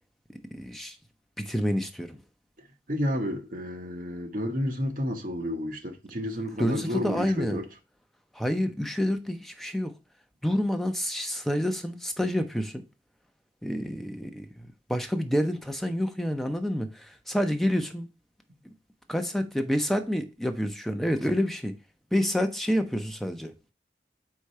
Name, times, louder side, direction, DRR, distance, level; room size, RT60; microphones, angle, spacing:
voice 1, 0.3-1.0 1.4-2.2 6.6-7.6 8.3-9.9 10.4-12.8 13.6-18.1 18.6-18.7 19.1-21.7 22.1-23.5, equal, ahead, 0.6 m, -28 dB
voice 2, 2.9-7.7, equal, 50° right, 1.0 m, -31 dB
4.8 x 3.7 x 5.5 m
head